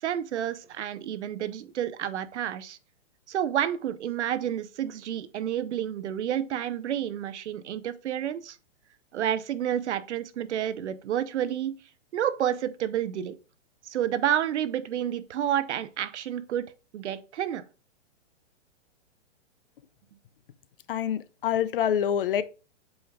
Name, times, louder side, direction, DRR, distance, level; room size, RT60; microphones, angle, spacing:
voice 1, 0.0-2.8 3.3-8.6 9.1-11.8 12.1-13.4 13.8-16.7 16.9-17.6, right 10 dB, 65° right, 0.8 m, -30 dB
voice 2, 20.9-22.4, left 9 dB, 50° left, 0.5 m, -26 dB
7.8 x 5.1 x 2.3 m
hypercardioid pair, 155°, 37 cm